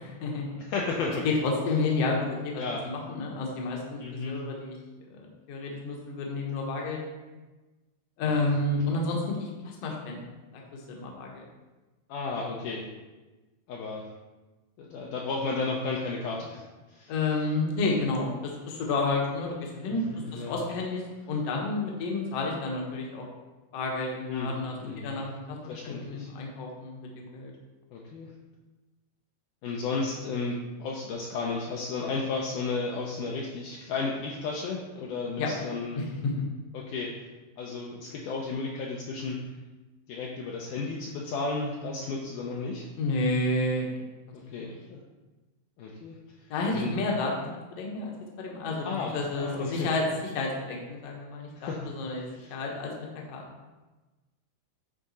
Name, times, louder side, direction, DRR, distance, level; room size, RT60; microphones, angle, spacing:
voice 1, 0.0-0.6 1.2-4.0 4.3-4.8 5.1-7.0 8.2-10.2 10.7-11.4 17.1-20.0 20.3-23.3 23.7-27.5 35.4-35.5 36.0-36.4 43.0-44.0 46.5-47.3 47.7-48.1 48.4-48.9 49.1-50.0 50.3-52.9 53.3-53.4, left 3 dB, 60° left, -1 dB, 1.7 m, -30 dB
voice 2, 0.7-1.2 2.6-2.8 4.0-4.4 8.2-8.4 12.1-12.9 13.7-14.0 14.8-16.6 16.9-17.1 19.8-20.6 24.3-25.2 25.7-26.3 27.9-28.3 29.6-36.0 36.7-37.1 37.6-39.4 40.1-42.9 44.3-45.0 45.8-46.2 46.7-46.9 48.8-49.9 51.6-51.9 52.3-52.5, left 4 dB, 75° left, -3 dB, 2.0 m, -33 dB
10.0 x 3.7 x 4.2 m, 1.2 s
omnidirectional pair, 4.2 m